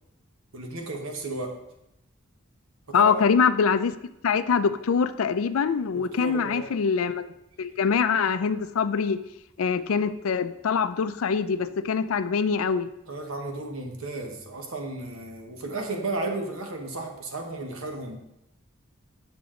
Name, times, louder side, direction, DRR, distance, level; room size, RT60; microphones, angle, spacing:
voice 1, 0.5-1.6 2.9-3.3 5.9-6.7 13.1-18.2, right 2 dB, 80° right, 3 dB, 1.1 m, -33 dB
voice 2, 2.9-4.0 4.2-7.3 7.6-9.2 9.6-12.9, left 6 dB, 85° left, 13 dB, 0.4 m, -24 dB
6.9 x 5.9 x 3.8 m, 0.84 s
head